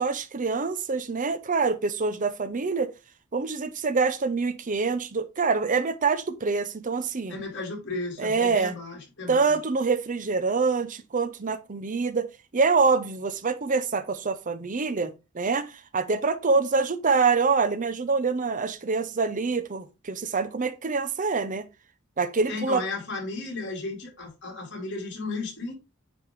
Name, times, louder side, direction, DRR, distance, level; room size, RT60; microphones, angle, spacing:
voice 1, 0.0-2.9 3.3-7.4 8.2-8.7 9.3-21.7 22.2-22.8, right 4 dB, 40° right, 0.7 m, -25 dB
voice 2, 7.3-9.6 22.5-25.7, left 3 dB, 55° left, 3.1 m, -34 dB
9.5 x 3.6 x 4.6 m
head